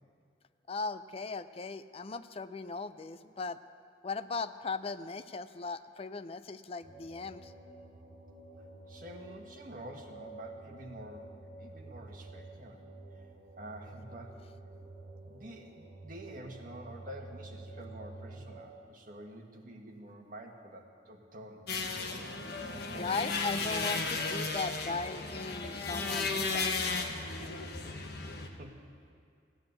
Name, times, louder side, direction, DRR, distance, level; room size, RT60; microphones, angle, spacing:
voice 1, 0.7-3.6 4.0-7.5 23.0-26.9, left 4 dB, 35° left, 12 dB, 0.4 m, -38 dB
sound 1, 6.8-18.8, right 2 dB, 65° right, 2.4 m, -50 dB
voice 2, 8.9-12.8 13.6-14.4 15.2-21.7 28.6-28.8, right 1 dB, 50° right, 1 dB, 1.6 m, -48 dB
sound 2, 21.7-28.5, left 3 dB, 60° left, 1.2 m, -34 dB
16.0 x 9.8 x 8.1 m, 2.2 s
head